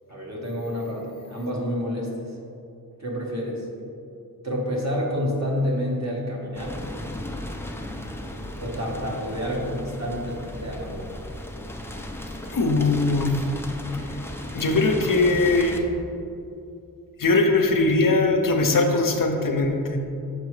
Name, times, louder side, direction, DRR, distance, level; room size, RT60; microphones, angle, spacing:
voice 1, 0.1-2.1 3.0-3.7 4.4-6.8 8.6-11.1, equal, 45° right, -3 dB, 1.4 m, -28 dB
sound 1, 6.6-15.8, left 1 dB, 5° left, 0.5 m, -36 dB
voice 2, 12.5-13.3 14.5-15.8 17.2-20.0, left 3 dB, 60° left, 3 dB, 0.7 m, -20 dB
6.6 x 4.7 x 3.2 m, 2.7 s
cardioid pair, 50°, 37 cm